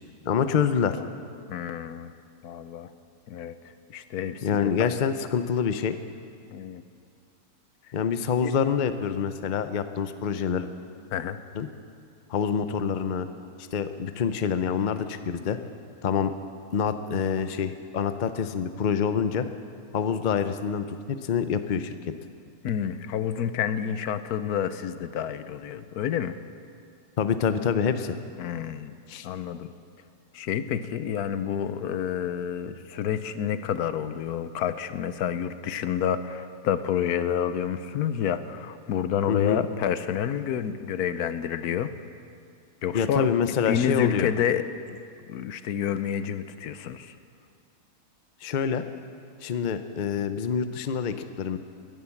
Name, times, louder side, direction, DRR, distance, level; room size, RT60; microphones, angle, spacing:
voice 1, 0.2-1.0 4.4-6.0 7.9-10.7 11.5-11.7 12.3-13.3 13.7-15.6 16.0-16.3 16.7-19.5 19.9-21.9 27.2-28.2 29.1-29.3 39.3-39.6 42.9-44.3 48.4-48.8 49.4-51.6, left 7 dB, 45° left, 10 dB, 0.6 m, -26 dB
voice 2, 1.5-2.1 2.4-2.9 3.3-3.6 3.9-4.9 6.5-6.8 8.4-8.5 11.1-11.4 22.6-26.4 28.4-28.9 29.2-29.7 30.3-41.9 42.8-43.3 43.7-44.6 45.3-47.1, left 9 dB, 85° left, 12 dB, 1.2 m, -29 dB
18.5 x 11.0 x 7.2 m, 2.4 s
omnidirectional pair, 1.6 m